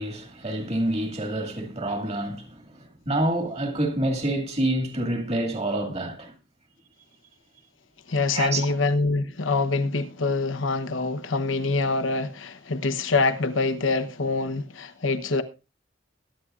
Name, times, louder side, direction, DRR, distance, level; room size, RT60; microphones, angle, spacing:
voice 1, 0.0-6.3 8.3-8.7, right 1 dB, 35° right, 2.1 m, -27 dB
voice 2, 8.1-15.4, left 3 dB, 80° left, 1.0 m, -25 dB
21.5 x 9.6 x 2.5 m
head